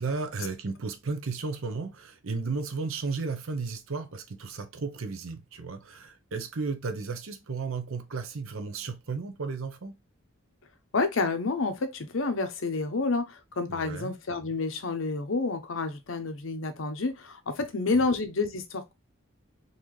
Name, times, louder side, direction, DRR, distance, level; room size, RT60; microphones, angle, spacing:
voice 1, 0.0-10.0 13.7-14.1 17.9-18.0, right 4 dB, 70° right, 0.7 m, -34 dB
voice 2, 10.9-18.9, left 3 dB, 65° left, 0.7 m, -29 dB
3.9 x 2.7 x 3.1 m
head